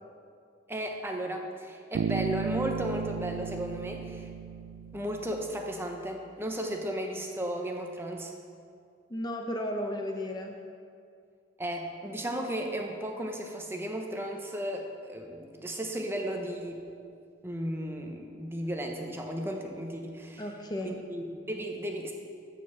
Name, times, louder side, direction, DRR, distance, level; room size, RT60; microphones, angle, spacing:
voice 1, 0.7-4.3 4.9-8.3 11.6-16.8 17.4-20.5 20.8-22.1, equal, 10° right, 2 dB, 0.7 m, -35 dB
Bass guitar, 1.9-5.7, right 8 dB, 75° right, 0.3 m, -35 dB
voice 2, 9.1-10.6 20.4-21.0, left 1 dB, 20° left, 2 dB, 0.6 m, -34 dB
6.8 x 6.6 x 7.4 m, 2.3 s
head